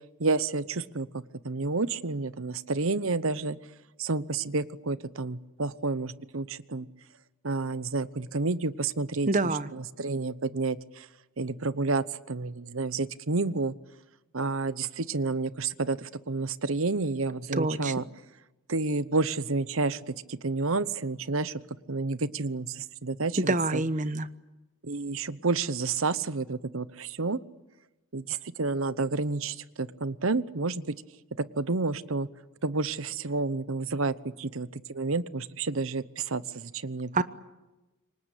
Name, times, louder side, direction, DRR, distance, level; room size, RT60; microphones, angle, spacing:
voice 1, 0.2-3.6 4.0-6.9 7.4-9.3 9.7-11.1 11.4-13.7 14.3-18.0 18.7-21.6 21.9-23.8 24.8-27.4 28.1-30.9 31.4-32.3 32.6-37.2, right 3 dB, 65° right, 16 dB, 1.0 m, -30 dB
voice 2, 9.3-9.7 17.5-17.9 23.5-24.3 37.1-37.2, right 2 dB, 35° right, 13 dB, 1.1 m, -26 dB
27.5 x 24.5 x 8.5 m, 1.1 s
head